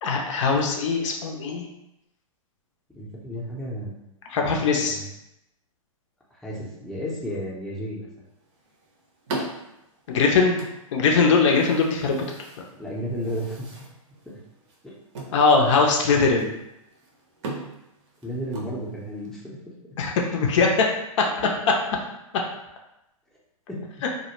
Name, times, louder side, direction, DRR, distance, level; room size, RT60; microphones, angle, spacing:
voice 1, 0.0-1.6 4.3-5.0 10.1-10.6 10.9-12.3 15.3-16.5 20.0-20.7, left 4 dB, 60° left, 1 dB, 0.5 m, -21 dB
voice 2, 3.0-4.0 4.4-5.0 6.4-8.3 12.8-13.7 14.8-14.9 18.2-19.4 23.7-23.8, equal, ahead, -6 dB, 0.6 m, -33 dB
sound 1, 8.3-19.3, right 2 dB, 55° right, 0.7 m, -40 dB
2.1 x 2.0 x 3.0 m, 0.86 s
hypercardioid pair, 125°, 18 cm